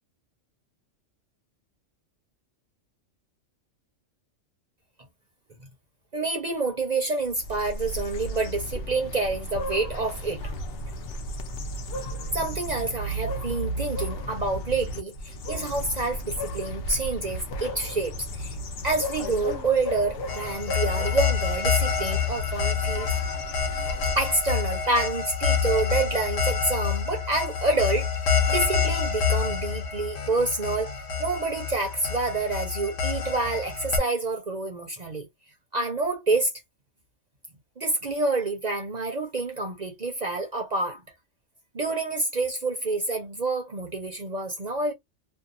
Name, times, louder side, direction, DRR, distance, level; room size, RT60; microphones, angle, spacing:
voice 1, 6.1-10.5 10.9-11.0 12.3-18.6 18.8-23.1 24.2-35.3 35.7-36.5 37.8-41.0 41.7-44.9, right 3 dB, 40° right, 0.7 m, -28 dB
sound 1, 7.3-24.6, equal, 60° left, 0.7 m, -34 dB
sound 2, 20.3-34.0, left 6 dB, 90° left, 1.2 m, -27 dB
2.7 x 2.2 x 2.5 m
omnidirectional pair, 1.3 m